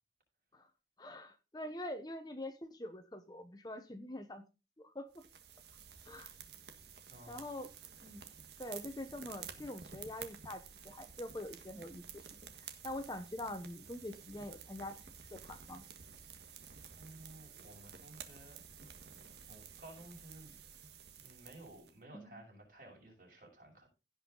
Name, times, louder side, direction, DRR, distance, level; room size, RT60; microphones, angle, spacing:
voice 1, 1.0-4.4 4.8-5.2 6.1-6.3 7.3-7.7 8.0-8.2 8.6-12.3 12.6-14.9 15.3-15.8 22.1-22.4, left 1 dB, 20° left, 0.9 m, -45 dB
sound 1, 5.1-21.9, right 7 dB, 70° right, 1.6 m, -52 dB
voice 2, 7.1-7.4 16.9-18.6 19.5-20.5 21.2-23.9, right 1 dB, 50° right, 6.4 m, -55 dB
16.5 x 5.6 x 3.9 m
head